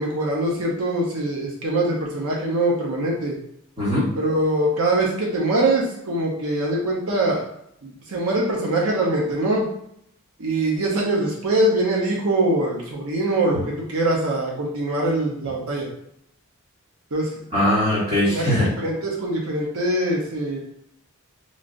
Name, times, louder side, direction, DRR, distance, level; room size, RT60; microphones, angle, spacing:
voice 1, 0.0-3.4 4.2-7.4 7.8-9.7 10.4-15.9 17.1-17.3 17.9-18.0 18.2-20.6, right 1 dB, 80° right, -2 dB, 0.7 m, -23 dB
voice 2, 3.8-4.1 17.5-18.7, left 1 dB, 35° right, -12 dB, 1.3 m, -20 dB
3.2 x 2.5 x 2.5 m, 0.72 s
head